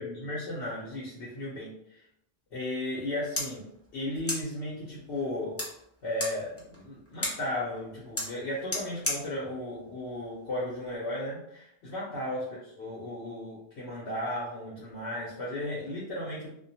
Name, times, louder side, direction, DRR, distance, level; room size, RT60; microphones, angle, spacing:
voice 1, 0.0-2.0 2.5-3.6 3.9-5.6 6.0-16.5, left 1 dB, 90° left, -7 dB, 1.0 m, -35 dB
sound 1, 2.9-11.0, left 1 dB, 20° left, 0.4 m, -39 dB
2.4 x 2.1 x 2.7 m, 0.75 s
omnidirectional pair, 1.1 m